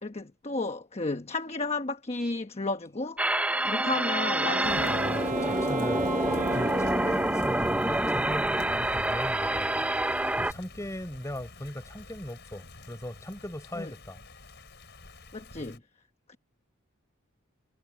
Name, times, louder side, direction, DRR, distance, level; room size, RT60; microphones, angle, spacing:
voice 1, 0.0-3.2 3.6-5.0 7.0-7.2 13.7-13.9 15.3-15.8 16.3-16.4, left 2 dB, 30° left, 1.1 m, -33 dB
sound 1, 3.2-10.5, right 1 dB, 5° right, 0.6 m, -27 dB
Wind instrument woodwind instrument, 3.5-7.9, right 1 dB, 40° right, 0.8 m, -34 dB
Thunder / Rain, 4.6-15.8, left 1 dB, 55° left, 6.0 m, -44 dB
voice 2, 4.9-14.2 15.6-15.8, equal, 15° left, 4.8 m, -39 dB
head